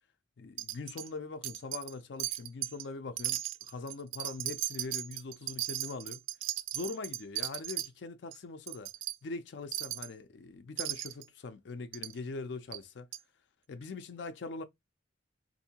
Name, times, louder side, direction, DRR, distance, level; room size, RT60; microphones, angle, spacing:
voice 1, 0.4-6.2 6.7-8.9 9.2-13.1 13.7-14.6, left 3 dB, 60° left, 0.4 m, -42 dB
Wind chime, 0.6-1.1 1.4-1.9 2.2-2.8 3.2-7.9 8.3-8.4 8.7-9.2 9.7-10.1 10.8-11.2 11.9-12.1 12.7-12.8 13.1-13.2, right 15 dB, 80° right, 0.3 m, -36 dB
3.6 x 2.6 x 2.7 m
head